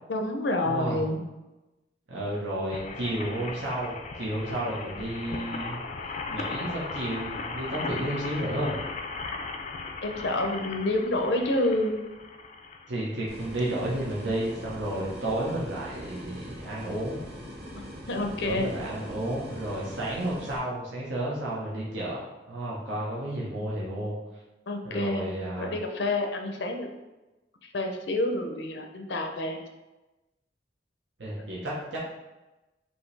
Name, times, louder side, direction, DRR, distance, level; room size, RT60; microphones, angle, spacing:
voice 1, 0.1-1.2 10.0-12.0 18.1-18.7 24.7-26.9 27.7-29.6, left 1 dB, 80° left, 4 dB, 0.6 m, -28 dB
voice 2, 0.6-1.0 2.1-5.8 6.3-8.7 12.9-17.2 18.4-24.2 24.8-25.8 31.2-32.0, right 1 dB, 85° right, -5 dB, 0.9 m, -32 dB
sound 1, 2.7-13.8 14.4-14.5 14.7-14.8, left 4 dB, 40° left, 0.4 m, -37 dB
sound 2, 13.3-20.6, equal, 60° right, 1.2 m, -42 dB
5.4 x 2.8 x 3.2 m, 1.0 s
head